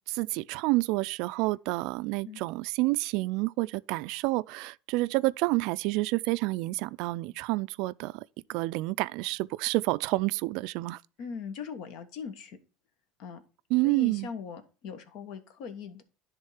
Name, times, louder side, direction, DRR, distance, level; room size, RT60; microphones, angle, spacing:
voice 1, 0.1-8.2 8.5-11.0 13.7-14.3, right 21 dB, 70° right, 0.3 m, -29 dB
voice 2, 11.2-12.6 13.2-13.4 13.8-16.0, left 6 dB, 65° left, 1.3 m, -40 dB
10.5 x 3.6 x 5.6 m
supercardioid pair, 100°, 0 cm